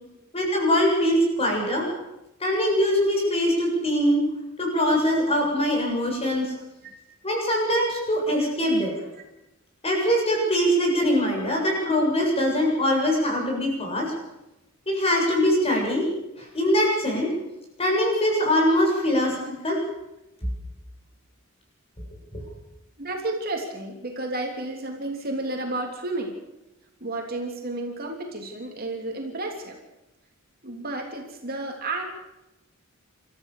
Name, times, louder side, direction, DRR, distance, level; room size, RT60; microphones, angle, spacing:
voice 1, 0.3-1.9 2.4-4.2 4.6-6.6 7.2-8.9 9.8-14.1 14.9-16.1 16.4-17.3 17.8-19.8 22.3-22.4, equal, 30° left, 0 dB, 7.6 m, -22 dB
voice 2, 23.0-26.3 27.0-29.8 30.6-32.0, right 2 dB, 45° right, 2 dB, 3.2 m, -31 dB
27.5 x 14.0 x 6.8 m, 0.94 s
head